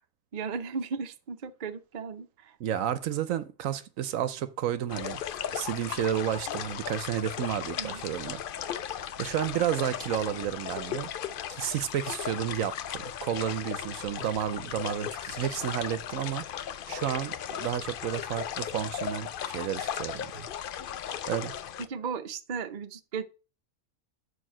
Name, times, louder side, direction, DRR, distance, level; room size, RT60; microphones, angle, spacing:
voice 1, 0.3-2.6 7.8-8.0 21.9-23.2, right 5 dB, 45° right, 0.7 m, -36 dB
voice 2, 2.6-5.2 5.5-11.1 11.5-20.5 21.3-21.5, right 10 dB, 70° right, 1.0 m, -32 dB
sound 1, 4.9-21.9, left 9 dB, 75° left, 0.4 m, -36 dB
6.7 x 4.5 x 6.1 m
omnidirectional pair, 1.5 m